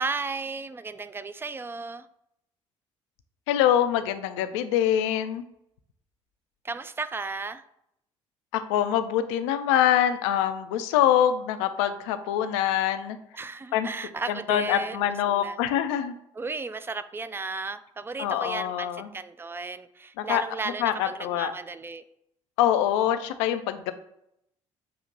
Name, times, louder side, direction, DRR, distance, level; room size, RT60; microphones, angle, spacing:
voice 1, 0.0-2.1 6.6-7.6 13.3-15.6 16.3-22.0, right 4 dB, 15° right, 11 dB, 0.3 m, -34 dB
voice 2, 3.5-5.5 8.5-13.2 13.7-13.9 14.3-16.1 18.2-19.1 20.2-20.4 20.8-21.5 22.6-23.9, left 10 dB, 60° left, 10 dB, 0.4 m, -24 dB
6.7 x 2.9 x 2.5 m, 0.78 s
figure-of-eight pair, 50°, 16 cm